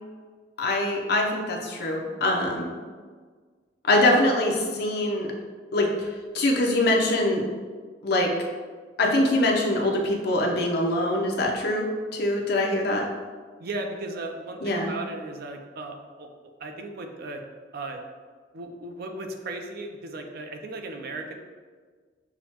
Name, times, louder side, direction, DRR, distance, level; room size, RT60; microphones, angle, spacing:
voice 1, 0.6-2.7 3.8-5.3 5.7-6.1 6.3-7.4 8.0-8.3 9.0-13.0 14.6-14.9, left 1 dB, 65° left, 0 dB, 0.6 m, -23 dB
voice 2, 13.6-16.3 16.6-17.4 17.7-18.0 18.5-21.3, right 2 dB, 60° right, 4 dB, 0.5 m, -36 dB
6.0 x 2.1 x 2.8 m, 1.5 s
head